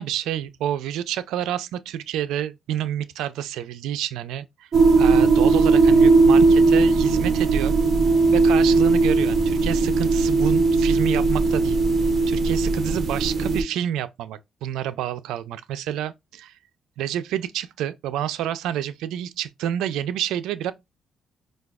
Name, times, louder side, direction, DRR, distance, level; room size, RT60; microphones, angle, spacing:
voice 1, 0.0-4.7 5.0-7.8 8.3-16.6 17.0-20.7, right 11 dB, 90° right, 0.3 m, -28 dB
sound 1, 4.7-13.6, right 3 dB, 50° right, 0.6 m, -18 dB
4.6 x 2.2 x 2.2 m
cardioid pair, 90°, 0 cm